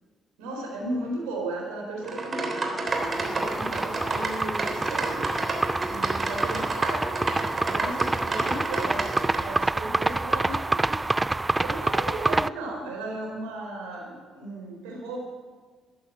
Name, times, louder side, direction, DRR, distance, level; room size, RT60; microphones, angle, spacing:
voice 1, 0.4-5.3 5.9-7.2 7.6-11.0 11.6-15.2, right 2 dB, 80° right, 0 dB, 4.3 m, -35 dB
sound 1, 2.0-9.4, right 2 dB, 40° right, 3.3 m, -31 dB
sound 2, 2.9-12.5, right 2 dB, 20° right, 0.4 m, -27 dB
13.0 x 11.5 x 8.8 m, 1.5 s
hypercardioid pair, 45°, 0 cm